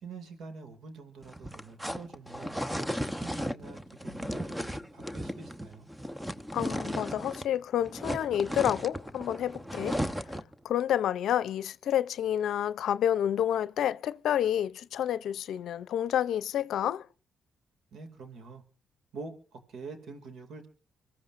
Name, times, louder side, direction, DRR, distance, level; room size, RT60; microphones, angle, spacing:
voice 1, 0.0-2.6 3.0-5.9 17.9-18.6 19.1-20.7, right 4 dB, 75° right, 2.4 m, -46 dB
sound 1, 1.2-7.6 7.8-10.5, equal, 5° right, 0.9 m, -35 dB
voice 2, 6.5-10.0 10.6-17.1, left 10 dB, 75° left, 0.6 m, -29 dB
25.0 x 14.5 x 2.6 m
cardioid pair, 70°, 0 cm